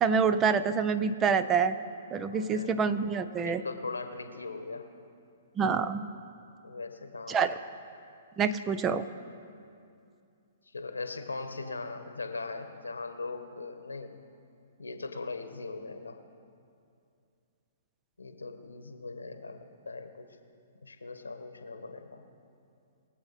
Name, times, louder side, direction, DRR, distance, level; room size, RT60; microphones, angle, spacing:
voice 1, 0.0-1.8 2.1-3.6 5.6-6.1 7.3-7.5 8.4-9.1, right 6 dB, 20° right, 12 dB, 0.6 m, -26 dB
voice 2, 2.3-2.9 3.4-4.9 6.6-7.4 10.7-14.2 14.8-16.2 18.2-20.3 20.8-22.2, left 3 dB, 85° left, 7 dB, 1.2 m, -40 dB
23.0 x 7.8 x 4.2 m, 2.5 s
figure-of-eight pair, 120°, 0 cm